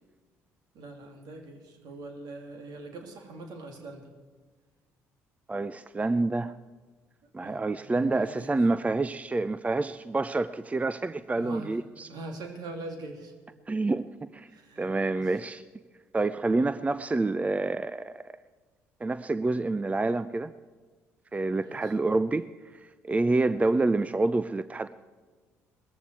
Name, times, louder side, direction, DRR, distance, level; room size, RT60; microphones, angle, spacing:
voice 1, 0.7-4.1 7.4-8.5 11.4-13.3 14.5-15.2 16.5-16.7 21.6-21.9, right 2 dB, 60° right, 4 dB, 2.9 m, -43 dB
voice 2, 5.5-6.5 7.3-12.1 13.7-14.5 14.8-15.6 16.1-18.2 19.0-20.5 21.3-24.9, right 2 dB, 20° right, 14 dB, 0.5 m, -28 dB
19.5 x 14.5 x 4.7 m, 1.4 s
hypercardioid pair, 50°, 8 cm